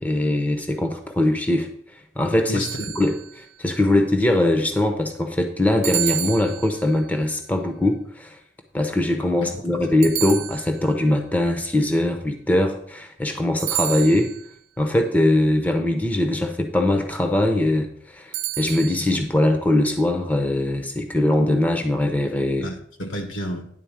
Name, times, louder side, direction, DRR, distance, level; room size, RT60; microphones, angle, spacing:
voice 1, 0.0-1.7 2.2-2.6 3.0-8.4 8.7-14.3 14.8-22.7, left 1 dB, 10° left, 5 dB, 0.7 m, -21 dB
voice 2, 2.5-2.9 9.4-10.0 22.6-23.7, equal, 75° left, 5 dB, 1.6 m, -31 dB
sound 1, 2.6-3.5 5.8-7.1 10.0-11.1 13.6-14.6 18.3-19.1, right 13 dB, 85° right, 0.7 m, -30 dB
10.5 x 4.1 x 7.2 m, 0.66 s
head